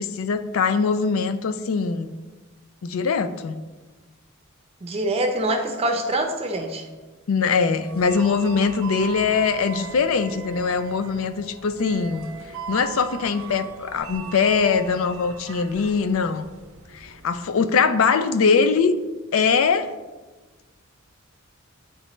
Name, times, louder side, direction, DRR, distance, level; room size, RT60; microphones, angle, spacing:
voice 1, 0.0-2.1 2.8-3.5 7.3-12.3 12.7-16.5 16.9-18.9 19.3-19.9, left 5 dB, 75° left, 11 dB, 0.4 m, -22 dB
voice 2, 4.8-6.8, right 1 dB, 30° right, 3 dB, 0.5 m, -24 dB
sound 1, 7.8-17.5, right 6 dB, 75° right, 0.6 m, -39 dB
9.4 x 3.3 x 3.1 m, 1.3 s
head